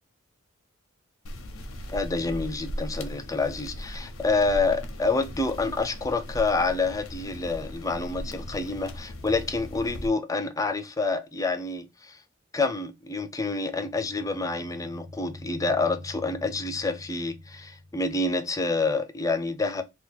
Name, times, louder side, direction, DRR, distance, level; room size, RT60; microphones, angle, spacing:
sound 1, 1.3-10.1, equal, 85° left, 0.7 m, -38 dB
voice 1, 1.9-12.2 12.5-19.8, left 3 dB, 15° left, 0.4 m, -28 dB
sound 2, 13.5-18.2, left 1 dB, 90° right, 0.7 m, -46 dB
2.8 x 2.2 x 3.9 m
head